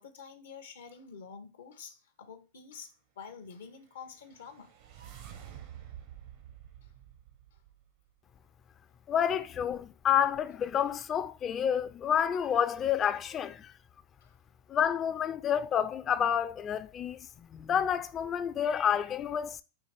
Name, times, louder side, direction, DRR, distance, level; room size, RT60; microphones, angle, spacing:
voice 1, 0.0-4.7 6.8-6.9 7.5-7.6 14.2-14.4, left 6 dB, 80° left, 0.6 m, -48 dB
sound 1, 4.0-8.1, right 10 dB, 60° right, 0.8 m, -49 dB
voice 2, 9.1-13.7 14.7-17.3 17.5-19.6, left 8 dB, 30° left, 0.3 m, -29 dB
4.4 x 2.5 x 3.2 m
hypercardioid pair, 105°, 0 cm